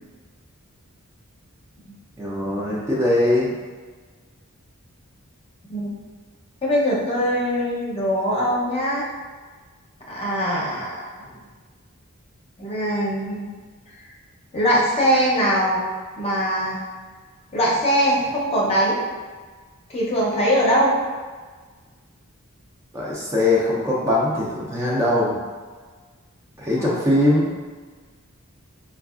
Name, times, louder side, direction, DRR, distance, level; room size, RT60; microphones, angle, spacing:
voice 1, 2.2-3.5 22.9-25.4 26.6-27.5, left 1 dB, 15° right, -6 dB, 0.5 m, -21 dB
voice 2, 6.6-9.1 10.1-11.4 12.6-13.5 14.5-15.8 16.2-16.8 17.5-19.0 19.9-20.9 26.8-26.9, equal, 30° left, -5 dB, 0.7 m, -22 dB
4.5 x 2.4 x 2.4 m, 1.4 s
head